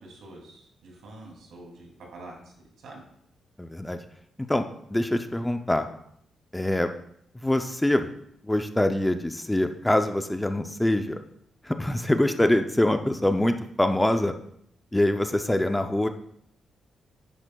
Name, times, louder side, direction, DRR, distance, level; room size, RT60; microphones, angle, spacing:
voice 1, 0.0-3.0, right 2 dB, 75° right, 0 dB, 2.6 m, -46 dB
voice 2, 3.6-4.0 4.5-4.6 4.9-5.9 6.5-6.9 7.4-8.1 8.4-11.2 11.6-14.4 14.9-16.1, left 1 dB, 5° left, 7 dB, 0.4 m, -24 dB
10.0 x 9.6 x 2.2 m, 0.69 s
wide cardioid pair, 160°, 0 cm